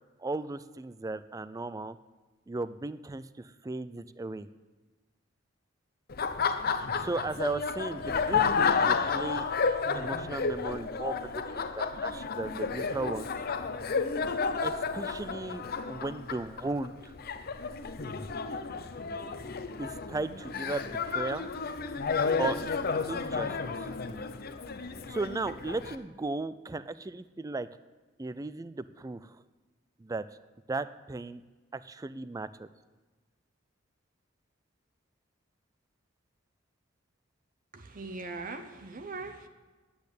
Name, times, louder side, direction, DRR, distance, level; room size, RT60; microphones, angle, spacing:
voice 1, 0.2-1.9 2.5-4.5 7.0-9.5 9.9-13.3 14.6-17.1 19.8-21.5 22.4-22.6 23.1-23.9 25.1-27.7 28.2-29.3 30.0-30.2 30.7-31.4 31.7-32.7, right 3 dB, 20° right, 14 dB, 0.4 m, -36 dB
Laughter, 6.1-26.0, left 5 dB, 50° left, 0.7 m, -31 dB
voice 2, 37.7-39.5, right 3 dB, 45° right, 6 dB, 0.8 m, -40 dB
10.5 x 8.6 x 8.3 m, 1.3 s
head